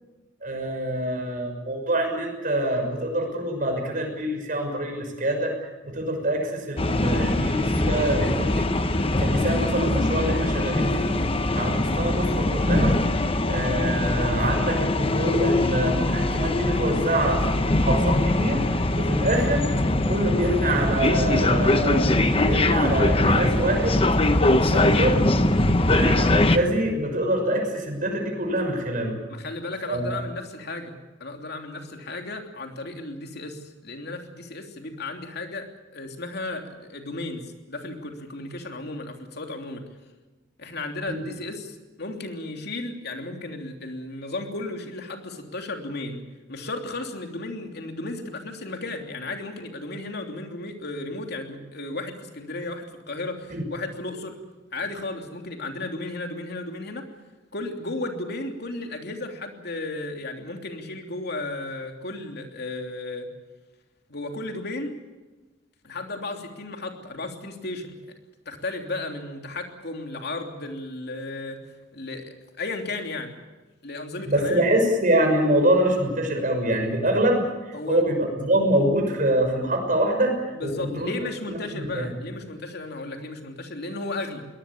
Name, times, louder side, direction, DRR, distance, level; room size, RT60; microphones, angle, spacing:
voice 1, 0.4-8.7 9.2-11.2 11.5-13.0 13.5-19.7 20.0-24.0 24.6-25.3 25.9-29.2 29.9-30.2 41.1-41.2 53.5-53.6 74.3-81.1 81.5-82.1, right 1 dB, 45° right, 3 dB, 6.1 m, -25 dB
sound 1, 6.8-26.6, left 1 dB, 30° left, 1.1 m, -22 dB
voice 2, 29.3-35.7 35.9-39.8 40.6-46.2 46.5-54.3 54.7-57.1 57.5-63.3 64.1-64.9 65.8-68.0 68.4-71.6 71.9-73.4 73.8-74.6 77.7-78.0 80.5-84.5, left 2 dB, 60° left, 4 dB, 3.0 m, -34 dB
23.0 x 19.0 x 8.6 m, 1.2 s
head